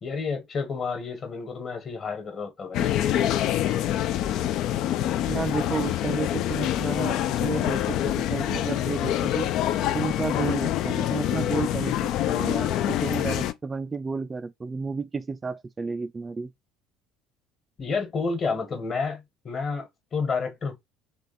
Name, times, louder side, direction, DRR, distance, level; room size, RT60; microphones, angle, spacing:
voice 1, 0.0-3.0 17.8-20.8, left 4 dB, 40° left, 1.4 m, -30 dB
sound 1, 2.7-13.5, left 12 dB, 55° left, 0.3 m, -26 dB
voice 2, 5.3-9.5 9.9-16.5, right 4 dB, 25° right, 0.3 m, -32 dB
3.4 x 3.0 x 4.1 m
figure-of-eight pair, 60°, 0 cm